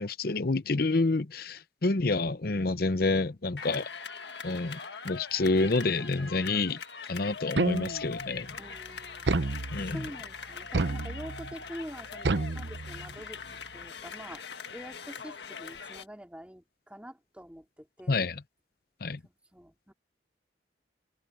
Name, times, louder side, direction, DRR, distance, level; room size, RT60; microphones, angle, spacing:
voice 1, 0.0-3.9 4.4-4.8 5.0-6.8 7.1-8.6 9.7-10.0 18.1-18.4 19.0-19.2, left 3 dB, 55° left, 0.8 m, -28 dB
sound 1, 3.6-16.1, left 5 dB, 75° left, 1.6 m, -42 dB
sound 2, 7.6-8.2 9.3-10.1 10.7-11.5 12.2-13.3, right 2 dB, 80° right, 0.9 m, -30 dB
voice 2, 8.6-9.3 9.8-13.4 13.7-14.4 14.7-18.3 19.2-19.9, equal, 5° right, 3.4 m, -46 dB
open air
head